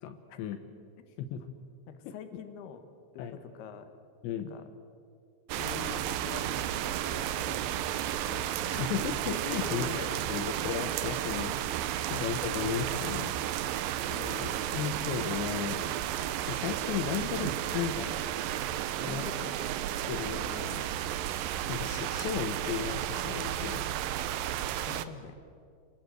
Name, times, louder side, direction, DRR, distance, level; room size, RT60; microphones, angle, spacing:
voice 1, 0.0-0.6 1.2-1.5 3.2-3.4 4.2-4.5 8.6-11.6 11.8-13.3 13.6-13.8 14.4-15.9 16.5-18.2 19.1-19.2 20.1-20.8 21.7-23.8, left 8 dB, 85° left, 7 dB, 3.4 m, -35 dB
voice 2, 1.9-2.8 3.1-3.9 4.5-4.6 5.6-8.9 9.6-10.6 12.1-12.2 14.0-14.8 19.0-19.6 24.9-25.4, left 6 dB, 70° left, 7 dB, 3.5 m, -45 dB
sound 1, 5.5-25.1, right 12 dB, 80° right, 2.1 m, -33 dB
28.5 x 20.0 x 7.9 m, 2.3 s
omnidirectional pair, 5.1 m